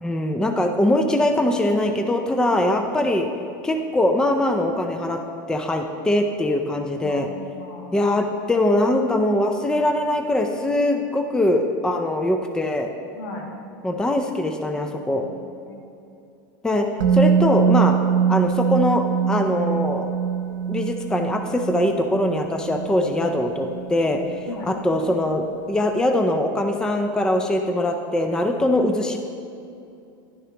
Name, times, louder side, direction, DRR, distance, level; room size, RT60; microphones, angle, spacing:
voice 1, 0.0-3.3 3.6-5.2 5.5-7.3 7.9-12.9 13.8-15.2 16.6-16.9 17.1-17.9 18.3-20.1 20.7-29.2, left 1 dB, 5° left, 4 dB, 0.4 m, -22 dB
voice 2, 7.0-7.9 13.1-13.5 15.6-15.8 24.5-24.7, left 2 dB, 70° left, 0 dB, 1.5 m, -37 dB
Musical instrument, 17.0-24.9 25.2-25.3, right 7 dB, 80° right, 0.6 m, -23 dB
11.0 x 6.6 x 2.9 m, 2.6 s
supercardioid pair, 125°, 11 cm